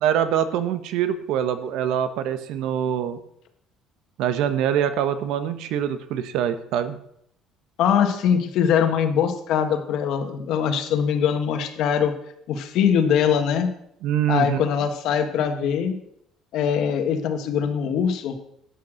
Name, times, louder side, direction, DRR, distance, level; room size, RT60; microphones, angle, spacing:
voice 1, 0.0-3.2 4.2-7.0 14.0-14.7, right 9 dB, 70° right, 11 dB, 1.1 m, -24 dB
voice 2, 7.8-12.1 12.5-13.7 14.3-16.0 16.5-18.4, left 8 dB, 60° left, 6 dB, 1.6 m, -22 dB
12.5 x 8.2 x 6.4 m, 0.74 s
cardioid pair, 170°, 0 cm